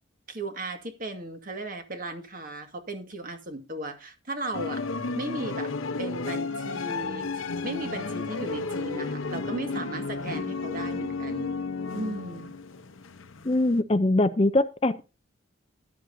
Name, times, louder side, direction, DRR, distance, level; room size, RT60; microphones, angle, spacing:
voice 1, 0.3-4.8 5.1-5.7 6.0-11.5 11.9-12.5, right 2 dB, 40° right, 1.9 m, -36 dB
sound 1, 4.5-13.8, left 3 dB, 75° left, 0.9 m, -33 dB
voice 2, 13.4-15.0, left 2 dB, 30° left, 0.5 m, -22 dB
14.0 x 10.5 x 2.7 m
head